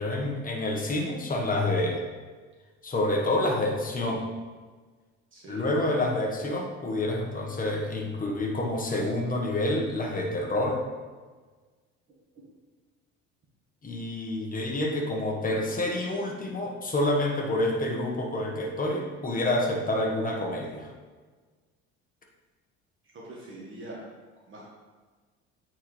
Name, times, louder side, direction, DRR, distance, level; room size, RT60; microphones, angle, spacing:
voice 1, 0.0-2.0 2.8-4.2 5.5-10.8 13.8-20.9, left 1 dB, 30° left, 0 dB, 1.4 m, -28 dB
voice 2, 5.3-5.6 23.1-24.0 24.5-24.7, right 2 dB, 40° right, -5 dB, 1.6 m, -43 dB
8.5 x 4.5 x 3.3 m, 1.4 s
supercardioid pair, 85°, 30 cm